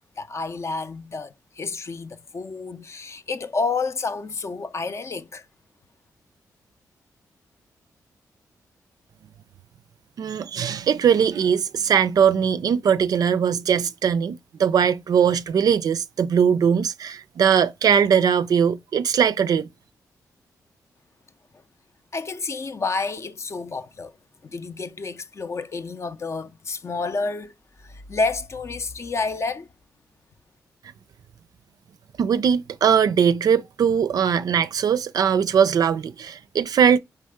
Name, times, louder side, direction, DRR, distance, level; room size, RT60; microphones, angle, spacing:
voice 1, 0.2-5.5 22.1-24.1 24.4-27.5 27.8-29.7, left 4 dB, 45° left, 0.5 m, -29 dB
voice 2, 10.2-19.7 32.2-37.0, right 7 dB, 65° right, 0.4 m, -20 dB
4.3 x 3.3 x 3.5 m
cardioid pair, 65°, 7 cm